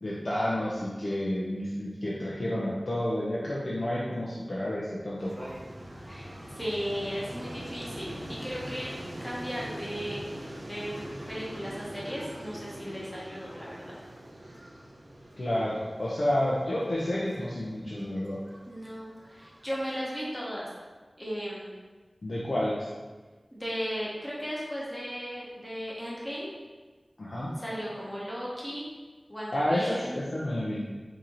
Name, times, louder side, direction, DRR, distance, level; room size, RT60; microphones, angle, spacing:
voice 1, 0.0-5.5 15.4-18.4 22.2-22.8 27.2-27.6 29.5-30.9, left 1 dB, 65° left, -7 dB, 0.7 m, -30 dB
sound 1, 5.2-19.8, right 1 dB, 45° right, 0.6 m, -43 dB
voice 2, 6.0-8.9 9.2-10.3 10.6-14.0 18.7-20.7 21.2-21.7 23.5-26.5 27.6-28.9 29.3-30.2, equal, 10° left, -7 dB, 1.3 m, -36 dB
4.5 x 2.9 x 3.9 m, 1.3 s
wide cardioid pair, 60°, 0 cm